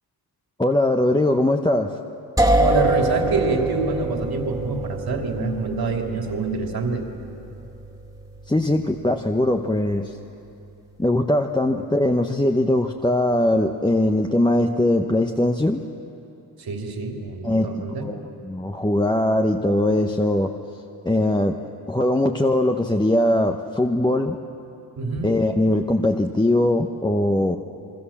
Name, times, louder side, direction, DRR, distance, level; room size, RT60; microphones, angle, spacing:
voice 1, 0.6-2.0 8.5-10.2 11.0-15.9 17.4-18.2 18.4-20.5 21.0-21.6 21.9-24.4 25.2-27.6, left 1 dB, 10° left, 3 dB, 1.0 m, -21 dB
sound 1, 2.4-12.1, right 1 dB, 10° right, 2.4 m, -27 dB
voice 2, 2.6-7.0 16.6-18.1 25.0-25.3, right 4 dB, 65° right, 2 dB, 3.1 m, -26 dB
27.5 x 22.5 x 7.3 m, 2.8 s
cardioid pair, 75°, 40 cm